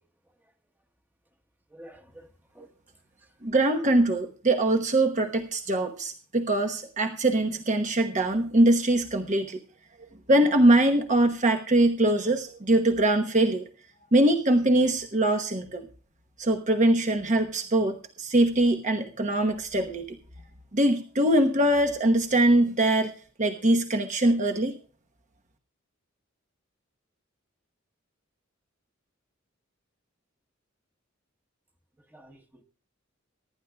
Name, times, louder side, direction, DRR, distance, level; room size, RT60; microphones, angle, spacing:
voice 1, 1.7-2.7 32.1-32.6, equal, 10° right, 1.2 m, -50 dB
voice 2, 3.4-9.6 10.3-13.6 14.1-15.8 16.4-20.0 20.7-23.1 23.4-24.8, right 1 dB, 40° right, 1.1 m, -22 dB
24.0 x 11.5 x 2.3 m
head